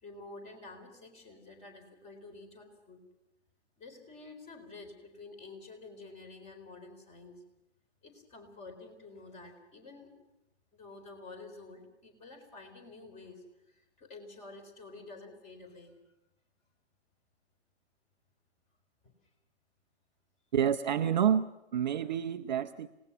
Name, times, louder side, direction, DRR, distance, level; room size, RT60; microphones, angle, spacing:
voice 1, 0.0-3.0 3.8-7.4 8.0-10.1 10.7-15.9, left 3 dB, 20° left, 7 dB, 4.0 m, -50 dB
voice 2, 20.5-22.9, right 9 dB, 40° right, 9 dB, 0.7 m, -29 dB
27.0 x 18.5 x 6.0 m, 0.93 s
figure-of-eight pair, 120°, 34 cm